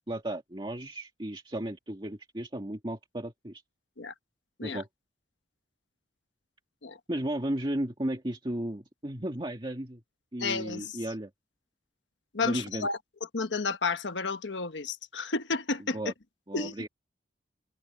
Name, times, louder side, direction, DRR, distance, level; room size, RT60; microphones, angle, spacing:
voice 1, 0.1-3.6 4.6-4.9 7.1-10.0 10.3-11.3 12.4-12.9 15.9-16.1 16.5-16.9, right 1 dB, 25° right, 2.1 m, -34 dB
voice 2, 10.4-10.9 12.3-13.0 13.3-16.0 16.5-16.7, left 4 dB, 85° left, 1.3 m, -31 dB
head